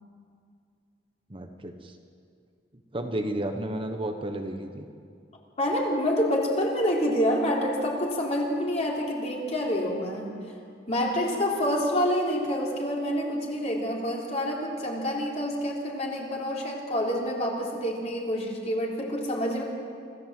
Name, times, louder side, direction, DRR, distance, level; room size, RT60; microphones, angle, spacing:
voice 1, 1.3-1.9 2.9-4.9, right 1 dB, 30° right, 5 dB, 1.2 m, -32 dB
voice 2, 5.6-10.3 10.9-19.6, equal, 40° left, -2 dB, 3.9 m, -27 dB
26.0 x 15.0 x 7.8 m, 2.3 s
head